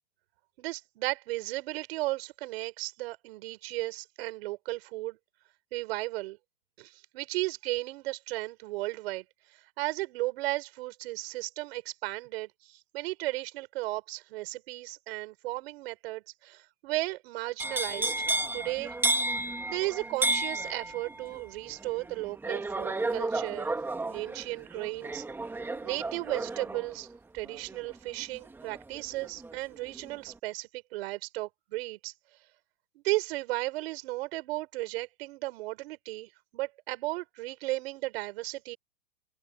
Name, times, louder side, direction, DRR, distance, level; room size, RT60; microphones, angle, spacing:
voice 1, 0.6-5.2 5.7-6.4 6.8-9.2 9.5-18.3 18.5-19.0 19.7-23.7 24.1-25.2 25.8-27.1 27.3-32.1 32.9-38.8, right 19 dB, 45° right, 5.9 m, -35 dB
sound 1, 17.6-29.6 29.9-30.3, right 2 dB, 5° right, 1.8 m, -33 dB
hypercardioid pair, 150°, 43 cm